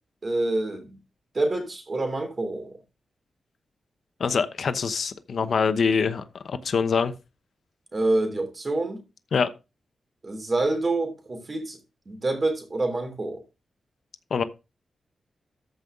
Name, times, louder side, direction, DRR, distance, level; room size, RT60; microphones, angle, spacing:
voice 1, 0.2-1.0 1.3-2.7 7.9-9.0 10.2-11.8 12.1-13.4, right 2 dB, 35° right, 3.2 m, -27 dB
voice 2, 4.2-7.1 9.3-9.5 14.3-14.4, left 5 dB, 65° left, 0.9 m, -24 dB
14.0 x 5.4 x 3.7 m
wide cardioid pair, 110°, 0 cm